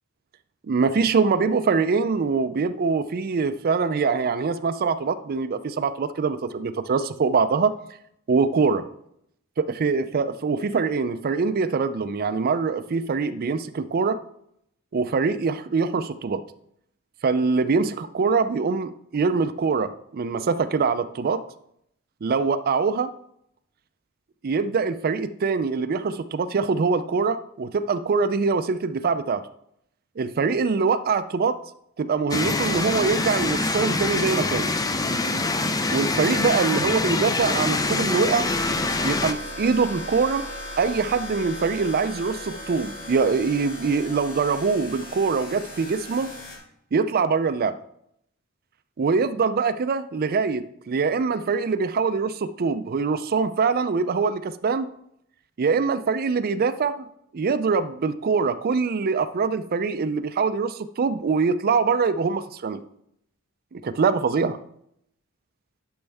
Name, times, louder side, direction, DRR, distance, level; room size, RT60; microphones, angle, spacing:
voice 1, 0.7-7.7 8.3-8.8 9.6-14.2 14.9-16.4 17.2-21.4 22.2-23.1 24.4-29.4 30.2-31.6 32.0-34.7 35.9-38.5 39.0-40.4 40.8-46.3 46.9-47.8 49.0-54.9 55.6-57.0 57.3-62.8 63.7-64.6, right 4 dB, 45° right, 11 dB, 0.4 m, -23 dB
sound 1, 32.3-39.3, left 3 dB, 15° left, 0.4 m, -25 dB
sound 2, 38.4-46.6, left 1 dB, 40° left, 1.9 m, -37 dB
10.5 x 5.3 x 3.4 m, 0.74 s
head